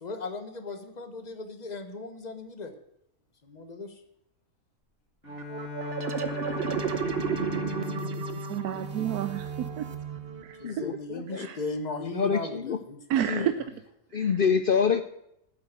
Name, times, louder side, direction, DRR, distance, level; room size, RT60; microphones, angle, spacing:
voice 1, 0.0-2.7 3.4-3.9 10.6-13.5, left 3 dB, 30° left, 8 dB, 1.2 m, -37 dB
Bowed string instrument, 5.2-9.9, left 5 dB, 55° left, 2.6 m, -38 dB
sound 1, 5.3-10.7, right 7 dB, 50° right, 0.9 m, -33 dB
voice 2, 8.5-9.9 10.4-10.9 11.3-11.6 13.1-13.6 14.1-14.3, right 11 dB, 80° right, 10 dB, 1.1 m, -30 dB
voice 3, 10.6-11.5 12.1-12.8 13.3-13.5 14.1-15.0, left 6 dB, 75° left, 10 dB, 0.5 m, -26 dB
8.9 x 8.0 x 8.9 m, 0.78 s
omnidirectional pair, 1.6 m